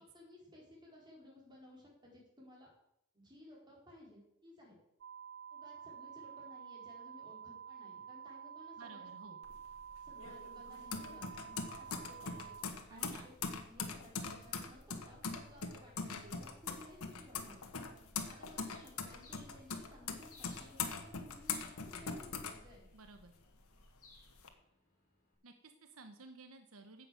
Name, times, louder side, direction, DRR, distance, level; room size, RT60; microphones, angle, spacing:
voice 1, 0.0-2.7 3.1-4.8 5.5-9.4 10.0-17.6 18.3-22.9, left 1 dB, 20° right, -2 dB, 4.3 m, -58 dB
sound 1, 5.0-12.7, right 7 dB, 50° right, 0.3 m, -50 dB
voice 2, 8.8-9.4 12.9-13.3 22.9-23.3 25.4-27.1, right 3 dB, 75° right, 7 dB, 1.0 m, -54 dB
sound 2, 9.4-23.3 23.6-24.5, left 5 dB, 80° left, 1.5 m, -42 dB
Bird, 18.7-25.3, left 3 dB, 40° left, 5.8 m, -66 dB
10.0 x 7.9 x 7.7 m, 0.78 s
head